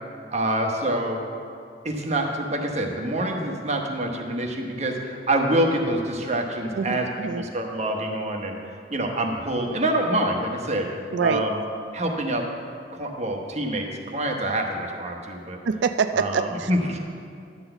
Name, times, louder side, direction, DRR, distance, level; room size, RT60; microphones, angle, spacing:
voice 1, 0.3-1.2 1.8-7.1 7.4-8.6 8.9-10.9 11.2-11.6 11.9-12.4 12.9-15.6 16.1-17.0, right 1 dB, 40° right, 2 dB, 1.0 m, -26 dB
voice 2, 6.7-7.4 11.1-11.5 15.6-16.7, right 5 dB, 75° right, 10 dB, 0.4 m, -25 dB
11.5 x 4.0 x 7.9 m, 2.3 s
head